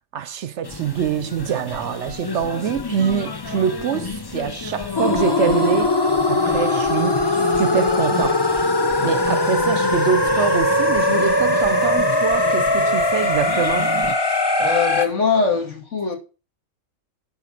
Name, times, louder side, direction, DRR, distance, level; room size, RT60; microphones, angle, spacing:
voice 1, 0.1-6.0 6.3-7.2 7.6-8.5 9.0-13.9, right 8 dB, 65° right, 0.8 m, -24 dB
sound 1, 0.6-14.2, left 4 dB, 35° left, 0.3 m, -32 dB
sound 2, 4.9-15.1, left 2 dB, 20° left, 1.0 m, -20 dB
voice 2, 14.6-16.2, left 5 dB, 60° left, 2.6 m, -21 dB
11.0 x 4.2 x 5.8 m
omnidirectional pair, 1.4 m